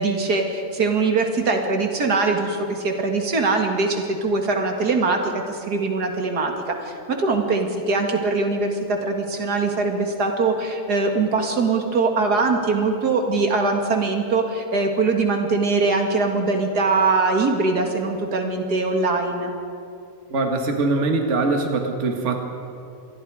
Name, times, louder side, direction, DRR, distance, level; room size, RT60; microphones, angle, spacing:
voice 1, 0.0-19.5, right 3 dB, 80° right, 3 dB, 2.6 m, -22 dB
voice 2, 20.3-22.4, right 3 dB, 50° right, 3 dB, 2.0 m, -22 dB
26.5 x 21.5 x 4.9 m, 2.4 s
omnidirectional pair, 1.7 m